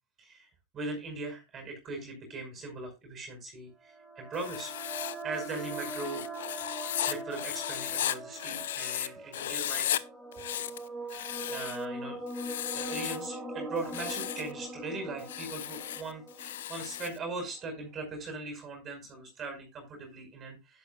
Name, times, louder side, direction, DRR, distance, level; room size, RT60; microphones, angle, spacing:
voice 1, 0.2-0.5 0.7-4.7 5.2-6.3 7.1-9.9 11.1-20.8, right 3 dB, 25° right, 4 dB, 5.3 m, -40 dB
sound 1, 3.9-17.5, right 2 dB, 10° right, 4.4 m, -41 dB
Writing, 4.3-9.1 9.3-10.0 10.3-11.8 12.3-13.3 13.8-14.5 15.2-17.2, left 12 dB, 60° left, 0.6 m, -35 dB
11.5 x 11.0 x 2.5 m, 0.24 s
figure-of-eight pair, 90°, 0 cm